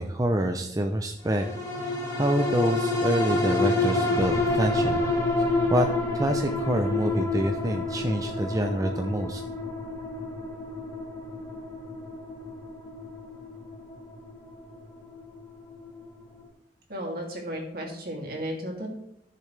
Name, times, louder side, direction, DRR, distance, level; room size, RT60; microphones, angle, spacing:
voice 1, 0.0-1.5 1.8-5.0 5.5-5.9 6.2-9.4, right 1 dB, 20° right, 4 dB, 0.6 m, -27 dB
sound 1, 1.3-16.0 16.4-16.5, left 2 dB, 20° left, 2.7 m, -29 dB
voice 2, 16.9-18.9, equal, 60° right, 0 dB, 2.6 m, -34 dB
14.0 x 6.7 x 3.3 m, 0.77 s
head